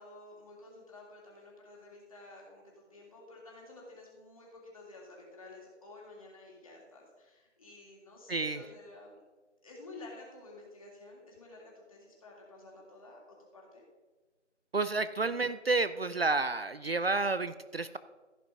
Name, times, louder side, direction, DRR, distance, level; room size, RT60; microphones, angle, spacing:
voice 1, 0.0-9.2 9.6-13.2 13.5-13.9, left 2 dB, 30° left, -3 dB, 2.9 m, -51 dB
voice 2, 8.3-8.6 14.7-18.0, right 3 dB, 55° right, 13 dB, 0.5 m, -30 dB
15.5 x 5.7 x 5.2 m, 1.3 s
figure-of-eight pair, 170°, 36 cm